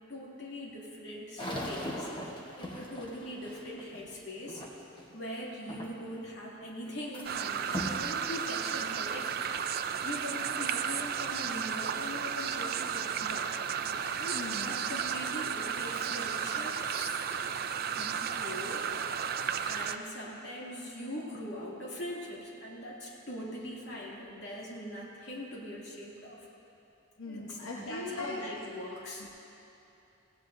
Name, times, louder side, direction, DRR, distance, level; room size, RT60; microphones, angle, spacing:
voice 1, 0.0-4.6 5.1-9.4 10.0-13.5 14.2-17.3 17.9-19.2 19.6-26.5 27.2-29.3, left 1 dB, 60° left, -4 dB, 2.5 m, -42 dB
sound 1, 1.4-5.1 5.7-6.2 6.6-7.3 7.7-8.0 8.7-8.8 9.5-9.6 12.1-12.2 12.7-13.3, equal, 25° left, 1.2 m, -40 dB
sound 2, 7.2-20.0, right 7 dB, 50° right, 0.4 m, -33 dB
voice 2, 14.3-14.8 27.2-28.4 29.2-29.3, left 2 dB, 85° left, -3 dB, 1.1 m, -40 dB
18.0 x 16.0 x 2.7 m, 2.9 s
head